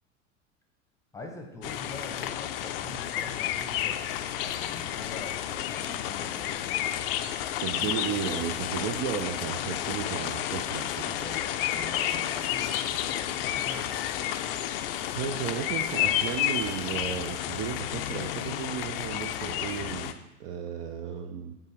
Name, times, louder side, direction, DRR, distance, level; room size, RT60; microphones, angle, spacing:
voice 1, 1.1-6.9 11.2-11.4 11.7-14.3, left 2 dB, 10° left, 2 dB, 0.9 m, -44 dB
sound 1, 1.6-20.1, left 11 dB, 50° left, 0.4 m, -31 dB
voice 2, 7.5-11.2 14.7-21.6, right 8 dB, 40° right, 5 dB, 0.5 m, -34 dB
5.4 x 3.7 x 5.0 m, 0.90 s
figure-of-eight pair, 80°, 38 cm